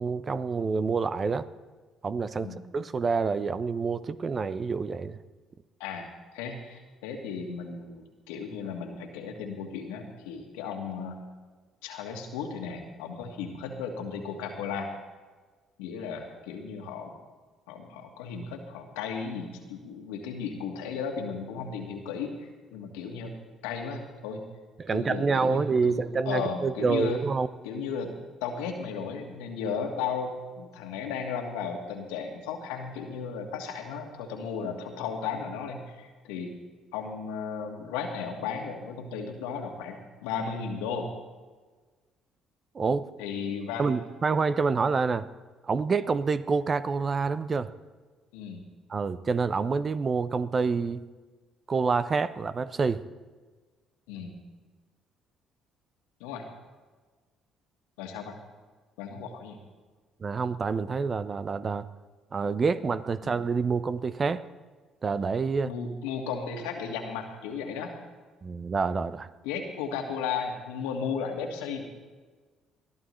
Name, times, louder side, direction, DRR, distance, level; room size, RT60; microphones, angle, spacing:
voice 1, 0.0-1.5 2.0-5.2 24.8-27.5 42.7-43.1 43.8-45.3 45.6-47.7 48.9-51.1 51.7-53.0 60.2-61.9 62.3-64.4 65.0-65.7 68.4-69.3, right 4 dB, 40° right, 14 dB, 0.7 m, -27 dB
voice 2, 5.8-11.2 11.8-14.9 15.8-17.1 17.7-23.3 23.6-24.4 24.9-27.2 27.6-28.1 28.4-36.6 36.9-41.1 43.2-43.9 48.3-48.6 54.1-54.3 56.2-56.5 58.0-58.4 59.0-59.6 63.2-63.3 65.6-67.9 69.4-71.9, left 6 dB, 75° left, 3 dB, 1.7 m, -35 dB
21.0 x 13.5 x 3.2 m, 1.4 s
hypercardioid pair, 50°, 0 cm